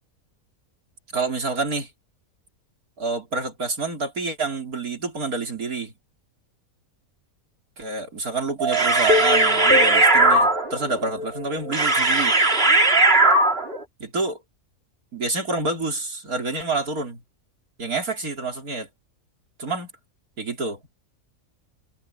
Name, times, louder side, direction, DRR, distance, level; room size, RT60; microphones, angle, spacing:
voice 1, 1.1-1.9 3.0-5.9 7.8-12.4 14.0-14.4 15.1-17.2 17.8-18.9 19.6-19.9 20.4-20.8, right 3 dB, 80° right, 4.3 m, -28 dB
sound 1, 8.6-13.8, right 2 dB, 40° right, 3.2 m, -18 dB
omnidirectional pair, 1.5 m